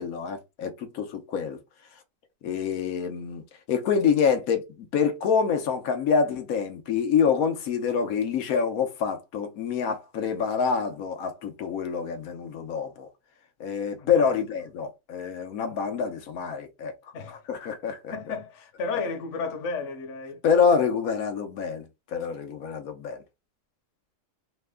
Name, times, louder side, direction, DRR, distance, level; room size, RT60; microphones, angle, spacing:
voice 1, 0.0-1.6 2.4-3.4 3.7-13.1 13.6-16.9 17.3-18.1 20.4-23.2, left 6 dB, 90° left, 1.2 m, -26 dB
voice 2, 14.0-14.3 17.1-17.4 18.1-20.4, left 4 dB, 65° left, 1.1 m, -33 dB
3.4 x 2.1 x 3.4 m
omnidirectional pair, 1.4 m